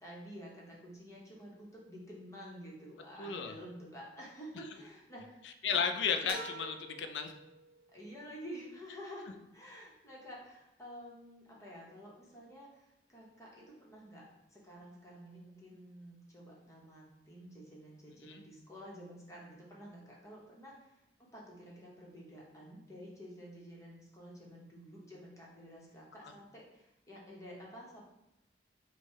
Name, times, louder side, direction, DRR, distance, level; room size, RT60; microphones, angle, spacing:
voice 1, 0.0-5.8 6.3-6.4 7.9-28.0, equal, 20° left, -4 dB, 1.0 m, -50 dB
voice 2, 3.2-3.5 5.6-7.3 18.2-18.4 26.2-26.3, left 6 dB, 80° left, 7 dB, 0.4 m, -34 dB
sound 1, 6.3-8.0, right 2 dB, 60° right, 0.7 m, -47 dB
4.4 x 2.2 x 4.5 m, 0.87 s
head